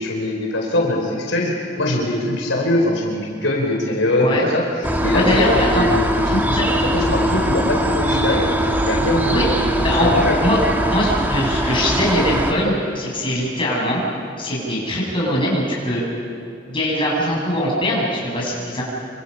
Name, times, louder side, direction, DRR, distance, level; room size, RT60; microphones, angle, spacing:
voice 1, 0.0-6.6 6.9-9.7 10.0-10.4, left 1 dB, 80° left, -1 dB, 4.3 m, -22 dB
sound 1, 4.8-12.5, right 1 dB, 10° right, 1.7 m, -21 dB
voice 2, 5.1-5.9 6.5-6.6 9.3-9.5 9.8-10.6 10.9-14.0 14.4-16.0 16.7-18.8, equal, 25° left, -4 dB, 7.6 m, -21 dB
27.5 x 26.0 x 5.6 m, 2.6 s
head